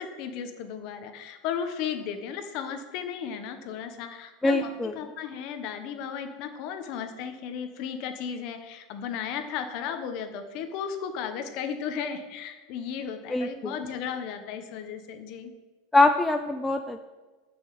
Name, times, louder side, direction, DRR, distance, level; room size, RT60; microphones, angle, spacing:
voice 1, 0.0-15.5, left 7 dB, 40° left, 7 dB, 1.2 m, -35 dB
voice 2, 4.4-4.9 13.3-13.7 15.9-17.0, left 2 dB, 5° left, 6 dB, 0.4 m, -23 dB
12.0 x 6.2 x 7.7 m, 1.3 s
supercardioid pair, 180°, 0 cm